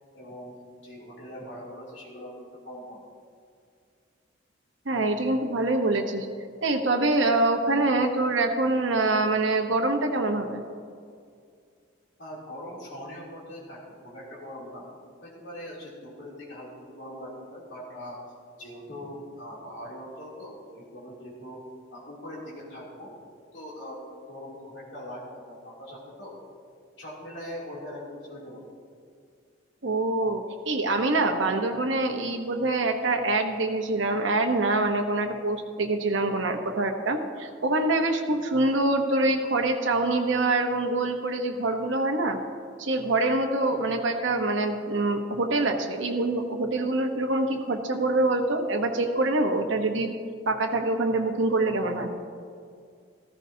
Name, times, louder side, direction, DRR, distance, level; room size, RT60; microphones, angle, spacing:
voice 1, 0.1-3.0 12.2-14.9 15.2-18.2 18.6-21.6 21.9-23.1 23.5-26.3 27.0-28.7 43.7-43.9, equal, 65° left, -6 dB, 3.0 m, -41 dB
voice 2, 4.9-6.3 6.6-10.6 29.8-42.4 42.8-50.1 50.5-52.1, right 2 dB, 75° right, 3 dB, 1.0 m, -25 dB
14.5 x 14.0 x 2.8 m, 2.2 s
head